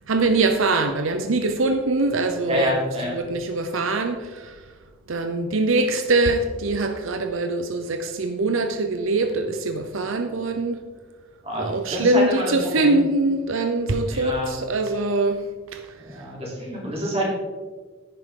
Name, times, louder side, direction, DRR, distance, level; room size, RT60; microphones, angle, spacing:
voice 1, 0.1-4.5 5.1-10.8 11.6-15.4 15.7-15.8, right 2 dB, 85° right, 0.7 m, -23 dB
voice 2, 2.5-3.2 11.4-11.6 11.9-12.5 12.8-13.0 14.1-14.6 16.0-17.3, equal, 30° right, 3.5 m, -27 dB
10.0 x 9.8 x 3.8 m
head